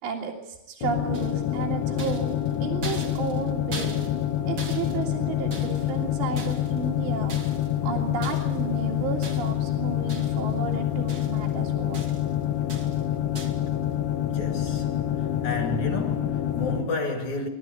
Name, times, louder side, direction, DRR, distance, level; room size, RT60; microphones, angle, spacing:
voice 1, 0.0-2.3 2.6-4.1 4.4-7.4 7.8-12.0, right 6 dB, 75° right, 4.2 m, -33 dB
sound 1, 0.8-16.8, left 11 dB, 90° left, 3.9 m, -27 dB
sound 2, 1.1-1.6 2.0-4.3 4.6-6.0 6.4-6.9 7.3-7.8 8.2-8.6 9.2-9.7 10.1-10.6 10.8-11.5 11.9-12.3 12.7-13.1 13.3-13.7, right 3 dB, 50° right, 1.1 m, -41 dB
voice 2, 14.2-15.1 15.4-17.5, left 2 dB, 45° left, 3.2 m, -31 dB
27.0 x 12.5 x 9.6 m
omnidirectional pair, 5.2 m